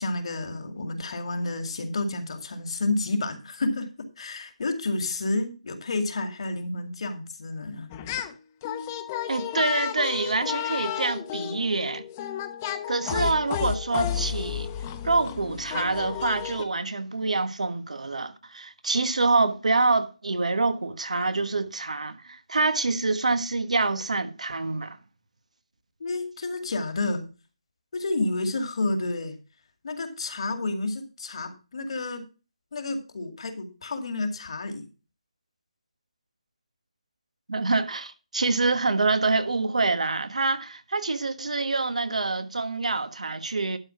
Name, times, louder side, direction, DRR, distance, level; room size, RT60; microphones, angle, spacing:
voice 1, 0.0-3.9 4.2-7.9 26.0-27.3 27.9-29.4 29.8-32.2 32.7-34.9, left 2 dB, 55° left, 2.2 m, -30 dB
sound 1, 7.9-8.3 8.6-16.6, left 10 dB, 25° left, 0.9 m, -32 dB
voice 2, 9.3-12.0 12.9-14.7 15.0-25.0 37.5-43.8, right 3 dB, 80° right, 1.4 m, -26 dB
12.0 x 4.8 x 5.9 m
figure-of-eight pair, 155°, 4 cm